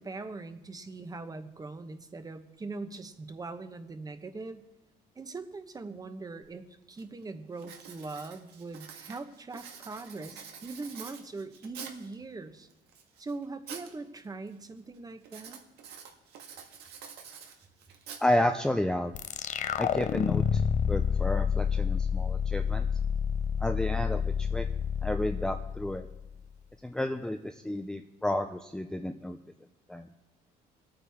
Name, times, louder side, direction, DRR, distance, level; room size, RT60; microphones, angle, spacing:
voice 1, 0.0-4.6 5.2-12.7 13.2-15.6, right 3 dB, 20° right, 9 dB, 1.1 m, -41 dB
Writing, 6.4-6.5 7.0-7.2 7.6-12.1 12.7-13.9 14.2-14.7 15.2-18.7, right 7 dB, 75° right, 1.7 m, -47 dB
voice 2, 18.2-19.1 19.8-20.6 20.9-22.9 23.6-24.7 25.0-26.1 26.8-29.4 29.9-30.1, left 1 dB, 5° left, 6 dB, 0.5 m, -31 dB
sound 1, 19.1-26.4, left 7 dB, 45° left, 0.6 m, -29 dB
23.5 x 9.0 x 3.6 m, 0.92 s
cardioid pair, 110°, 17 cm